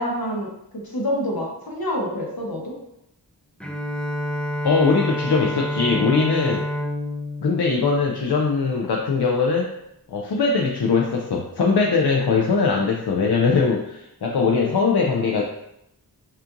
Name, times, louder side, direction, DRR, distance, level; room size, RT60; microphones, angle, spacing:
voice 1, 0.0-2.7, equal, 70° left, -2 dB, 1.0 m, -27 dB
Bowed string instrument, 3.6-8.9, left 1 dB, 5° left, 0.4 m, -28 dB
voice 2, 4.6-6.6 7.4-9.7 10.1-15.4, left 4 dB, 85° left, -1 dB, 0.5 m, -21 dB
5.5 x 2.5 x 2.5 m, 0.83 s
wide cardioid pair, 40°, 38 cm